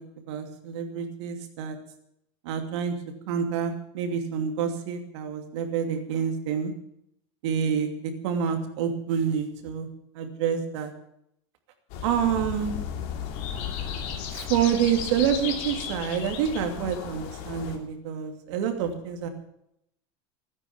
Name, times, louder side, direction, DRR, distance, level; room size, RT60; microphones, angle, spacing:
voice 1, 0.0-1.8 2.4-3.0 3.3-6.7 7.4-9.9 10.1-10.9 12.0-12.8 14.3-19.3, right 8 dB, 85° right, 5 dB, 2.7 m, -28 dB
sound 1, 11.9-17.8, left 7 dB, 60° left, 3.0 m, -34 dB
17.5 x 9.6 x 7.3 m, 0.76 s
cardioid pair, 150°, 14 cm